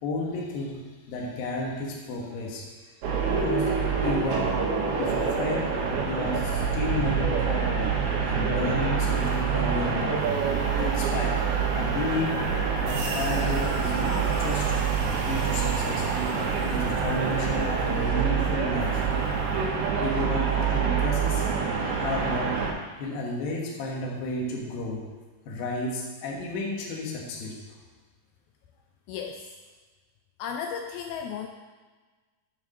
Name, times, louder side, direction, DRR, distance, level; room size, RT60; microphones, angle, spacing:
voice 1, 0.0-2.6 3.3-4.5 5.0-5.7 6.0-8.0 8.3-10.2 10.8-11.4 11.8-12.4 12.8-14.7 15.0-19.0 20.0-21.6 22.0-22.6 23.0-25.1 25.5-27.6, left 2 dB, 65° left, -1 dB, 2.8 m, -32 dB
sound 1, 3.0-22.7, right 6 dB, 75° right, 3.0 m, -26 dB
sound 2, 9.2-19.3, right 4 dB, 90° right, 3.3 m, -41 dB
voice 2, 29.1-29.5 30.4-31.5, left 7 dB, 85° left, 4 dB, 2.2 m, -34 dB
8.6 x 4.8 x 6.4 m, 1.3 s
omnidirectional pair, 4.9 m